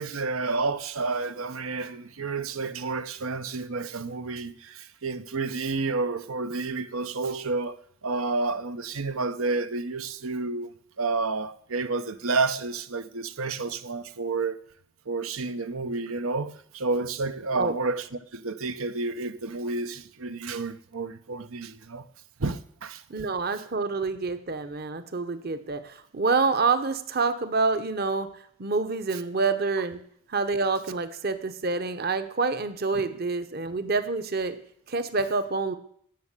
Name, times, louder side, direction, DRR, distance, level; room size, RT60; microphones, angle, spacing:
voice 1, 0.0-10.7 11.0-14.6 15.1-18.0 18.3-22.0 22.4-23.0, right 3 dB, 90° right, 0.9 m, -30 dB
voice 2, 23.1-28.3 28.6-30.0 30.3-34.6 34.9-35.7, right 4 dB, 45° right, 0.9 m, -27 dB
17.0 x 6.4 x 8.2 m
head